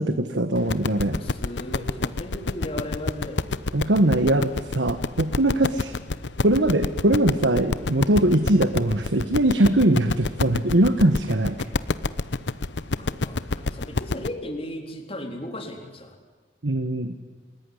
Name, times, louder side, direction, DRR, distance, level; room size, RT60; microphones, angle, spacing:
voice 1, 0.0-1.2 3.7-5.9 6.4-11.6 16.6-17.1, right 1 dB, 85° right, 9 dB, 1.4 m, -21 dB
sound 1, 0.6-14.3, left 3 dB, 80° left, 0.9 m, -28 dB
voice 2, 1.0-3.4 7.9-8.1 13.0-16.2, left 1 dB, 30° left, 4 dB, 4.0 m, -36 dB
29.0 x 20.5 x 9.9 m, 1.3 s
head